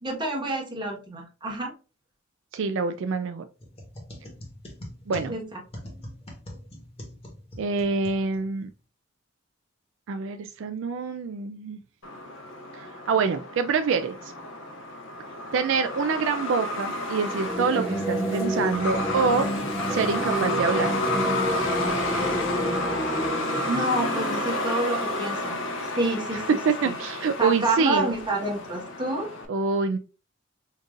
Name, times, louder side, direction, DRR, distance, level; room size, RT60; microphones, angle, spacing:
voice 1, 0.0-1.7 5.3-5.4 23.7-25.6 25.9-26.6 26.8-26.9 27.4-29.3, right 2 dB, 25° right, -1 dB, 1.3 m, -28 dB
voice 2, 2.5-3.4 5.1-5.3 7.6-8.7 10.1-11.8 12.7-14.3 15.5-19.5 19.9-20.9 26.3-28.1 29.5-30.0, right 5 dB, 70° right, 8 dB, 0.4 m, -26 dB
sound 1, 3.6-8.7, equal, 30° left, 1.2 m, -43 dB
Truck, 12.0-29.5, left 2 dB, 70° left, 0.9 m, -31 dB
sound 2, 17.3-24.7, right 1 dB, 5° left, 0.5 m, -30 dB
5.1 x 2.7 x 2.4 m, 0.34 s
head